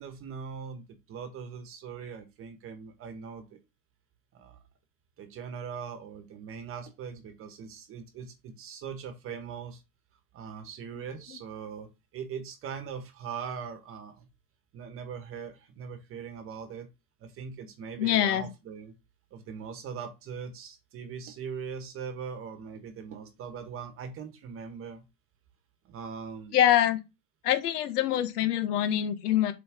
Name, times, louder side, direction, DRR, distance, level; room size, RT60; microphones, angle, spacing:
voice 1, 0.0-3.6 4.3-4.6 5.2-9.8 10.3-14.3 14.7-16.9 17.2-18.9 19.3-25.0 25.8-26.6, right 6 dB, 25° right, 1.4 m, -41 dB
voice 2, 18.0-18.4 26.5-27.0 27.4-29.5, left 11 dB, 70° left, 1.5 m, -24 dB
7.5 x 4.0 x 3.5 m
supercardioid pair, 140°, 48 cm